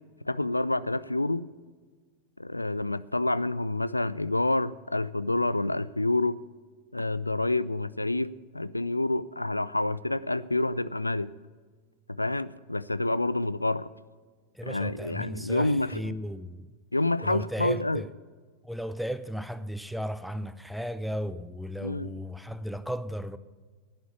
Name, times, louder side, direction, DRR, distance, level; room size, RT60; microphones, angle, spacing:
voice 1, 0.3-1.5 2.4-6.4 6.9-11.3 12.1-13.9 14.7-16.1 16.9-18.0 21.8-22.1, left 2 dB, 85° left, 0.3 m, -28 dB
voice 2, 14.5-16.7 17.2-18.1 18.6-23.4, equal, ahead, 0.6 m, -35 dB
11.0 x 8.8 x 8.4 m
figure-of-eight pair, 90°, 0 cm